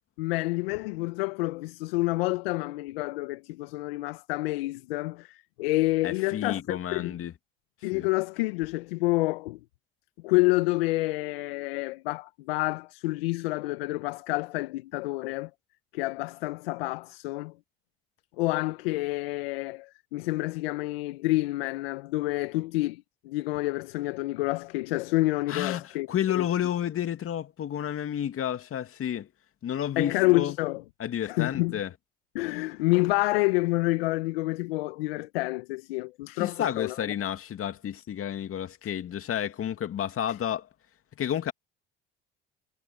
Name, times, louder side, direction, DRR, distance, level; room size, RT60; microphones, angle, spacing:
voice 1, 0.2-7.1 7.8-9.6 10.2-15.5 15.9-17.5 18.4-26.4 30.0-30.8 31.2-31.8 32.3-37.1 38.8-38.9 40.3-40.4, left 21 dB, 80° left, 1.1 m, -28 dB
voice 2, 6.0-7.3 7.9-8.1 25.5-25.8 26.1-29.3 29.6-30.5 31.0-31.9 36.4-40.7 41.2-41.5, left 10 dB, 50° left, 2.5 m, -31 dB
hypercardioid pair, 65°, 29 cm